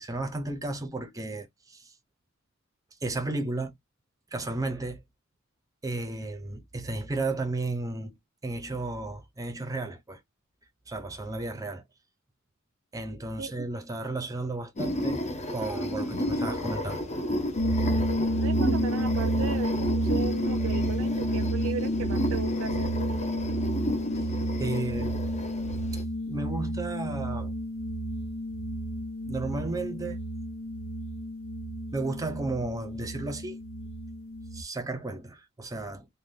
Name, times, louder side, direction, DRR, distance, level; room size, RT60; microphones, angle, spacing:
voice 1, 0.0-1.9 3.0-3.7 4.3-5.0 5.8-8.1 8.4-10.2 10.9-11.8 12.9-15.2 15.5-17.1 24.6-25.2 25.9-27.5 29.3-30.2 31.9-33.6 34.5-36.1, right 2 dB, 15° right, 0.6 m, -33 dB
sound 1, 14.8-26.0, left 1 dB, 35° left, 0.6 m, -32 dB
sound 2, 17.6-34.6, right 1 dB, 80° left, 0.7 m, -30 dB
voice 2, 18.4-22.9, right 5 dB, 80° right, 0.5 m, -36 dB
2.6 x 2.2 x 3.4 m
head